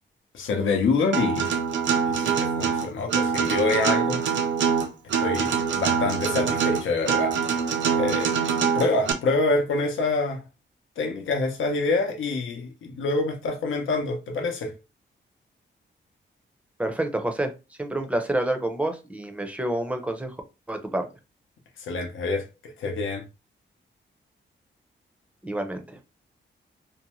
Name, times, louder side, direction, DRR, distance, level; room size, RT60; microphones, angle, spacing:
voice 1, 0.3-1.5 2.1-4.2 5.2-7.3 7.6-8.3 8.7-10.4 11.0-14.7 21.8-23.3, left 3 dB, 80° left, 0.7 m, -26 dB
Acoustic guitar, 1.1-9.1, right 6 dB, 70° right, 0.5 m, -24 dB
voice 2, 16.8-17.5 17.8-20.3 20.7-21.1 25.4-26.0, right 1 dB, 5° right, 0.5 m, -28 dB
2.6 x 2.1 x 2.9 m
wide cardioid pair, 105°, 20 cm